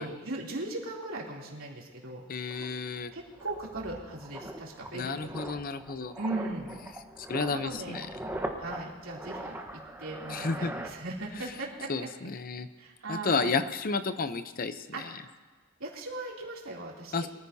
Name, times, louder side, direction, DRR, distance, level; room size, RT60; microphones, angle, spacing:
voice 1, 0.0-2.2 2.5-2.7 3.1-5.4 6.2-6.7 7.5-8.0 8.6-9.5 10.0-12.1 12.8-13.5 14.9-15.0 15.8-17.3, right 2 dB, 90° right, -3 dB, 3.0 m, -38 dB
sound 1, 2.1-2.2 2.5-11.6 11.8-12.1, right 1 dB, 10° right, 1.1 m, -41 dB
voice 2, 2.3-3.1 4.9-6.1 7.2-8.1 10.3-10.7 11.9-12.7 13.1-15.1 17.1-17.3, left 4 dB, 45° left, 11 dB, 0.6 m, -31 dB
23.5 x 14.5 x 2.8 m, 1.4 s
head